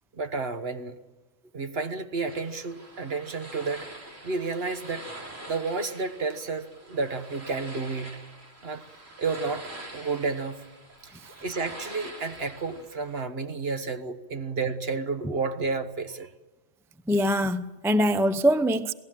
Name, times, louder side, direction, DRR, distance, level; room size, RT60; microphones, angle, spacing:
voice 1, 0.1-1.0 1.5-3.9 4.2-5.1 5.5-8.2 8.6-8.8 9.2-10.6 11.4-16.3, right 4 dB, 50° right, 1.5 m, -31 dB
sound 1, 2.2-13.2, right 1 dB, 75° right, 4.1 m, -45 dB
voice 2, 17.1-18.9, equal, 5° right, 0.5 m, -23 dB
27.5 x 18.5 x 7.6 m
omnidirectional pair, 1.3 m